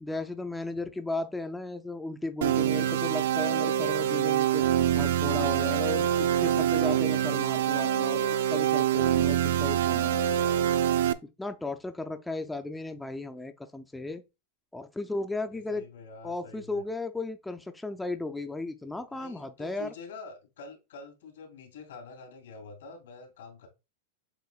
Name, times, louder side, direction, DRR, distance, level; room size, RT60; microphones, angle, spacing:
voice 1, 0.0-4.7 4.9-10.2 11.4-14.2 14.7-15.8 16.2-19.9, left 2 dB, 5° left, 0.3 m, -35 dB
sound 1, 2.4-11.1, right 10 dB, 75° right, 0.4 m, -25 dB
voice 2, 15.5-16.8 19.1-23.7, left 4 dB, 85° left, 2.5 m, -46 dB
7.9 x 2.9 x 2.3 m
supercardioid pair, 155°, 0 cm